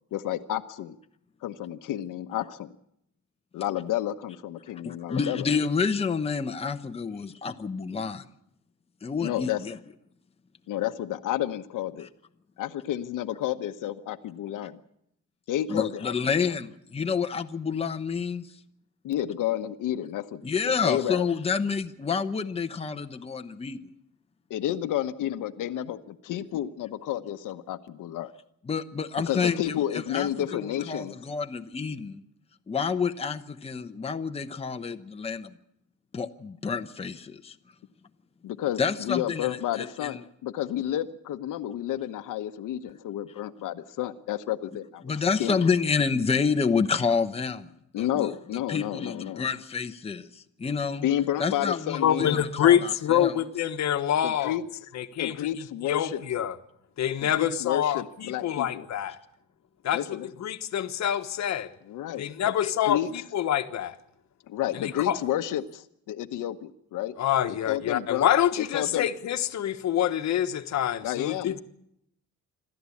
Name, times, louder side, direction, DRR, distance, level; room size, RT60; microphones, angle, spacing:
voice 1, 0.1-1.0 1.4-2.7 3.5-5.5 9.2-9.6 10.7-12.1 12.6-14.8 15.5-16.5 19.0-21.3 24.5-28.3 29.3-31.1 38.4-45.1 45.4-45.6 47.9-49.5 51.0-52.4 54.2-54.6 55.2-56.2 57.2-58.8 59.9-60.3 61.9-62.2 62.8-63.1 64.5-67.1 67.5-68.3 68.6-69.1 71.0-71.6, left 12 dB, 85° left, 1.1 m, -31 dB
voice 2, 4.8-8.2 9.0-9.8 15.7-18.5 20.4-23.8 28.7-32.2 32.7-35.5 36.1-37.6 38.8-40.2 45.0-47.7 48.0-48.3 48.7-51.0 51.4-53.3 62.6-62.7, left 5 dB, 20° left, 0.9 m, -29 dB
voice 3, 52.0-54.6 54.9-56.6 57.0-59.2 59.8-61.7 62.2-64.0 64.7-65.2 67.2-71.6, left 10 dB, 60° left, 1.3 m, -26 dB
27.0 x 13.0 x 8.5 m
cardioid pair, 135°, 31 cm